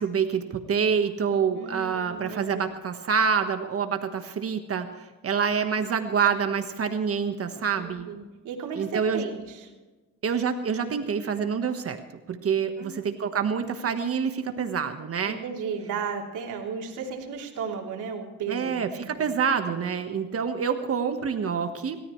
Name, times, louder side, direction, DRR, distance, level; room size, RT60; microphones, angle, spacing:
voice 1, 0.0-8.1 8.8-9.3 10.2-12.0 12.3-15.4 18.5-22.0, right 6 dB, 50° right, 7 dB, 1.4 m, -27 dB
voice 2, 1.5-2.6 7.8-9.7 12.8-13.0 15.2-19.3, right 6 dB, 85° right, 0 dB, 3.2 m, -35 dB
27.5 x 13.5 x 3.2 m, 1.2 s
cardioid pair, 90°, 30 cm